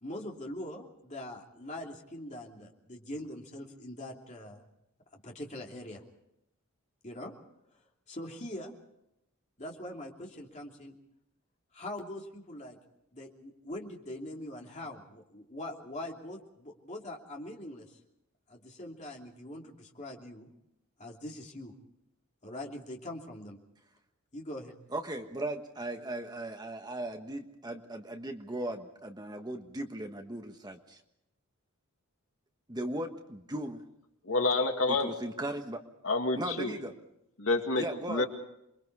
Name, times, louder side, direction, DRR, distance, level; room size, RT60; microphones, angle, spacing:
voice 1, 0.0-4.6 5.2-6.0 7.0-7.3 8.1-8.7 9.6-10.9 11.7-12.8 13.1-18.0 18.5-20.5 21.0-21.7 22.4-23.6 24.3-24.7, left 1 dB, 30° left, 0 dB, 3.0 m, -42 dB
voice 2, 24.9-31.0 32.7-33.8 34.9-35.8 36.4-36.9 37.8-38.2, right 1 dB, 20° right, 5 dB, 1.3 m, -37 dB
voice 3, 34.2-35.1 36.0-36.8 37.4-38.3, left 3 dB, 65° left, 4 dB, 2.2 m, -28 dB
28.0 x 23.0 x 4.8 m, 0.81 s
head